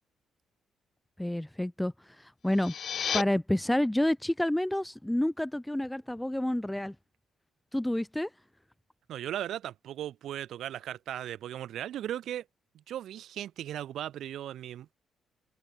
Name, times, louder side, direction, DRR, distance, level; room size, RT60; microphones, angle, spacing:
voice 1, 1.2-2.7 3.1-7.0 7.7-8.3, left 1 dB, 5° left, 0.3 m, -29 dB
sound 1, 2.4-3.2, left 8 dB, 55° left, 0.5 m, -32 dB
voice 2, 9.1-12.5 12.7-14.9, right 11 dB, 75° right, 1.3 m, -37 dB
cardioid pair, 90°, 0 cm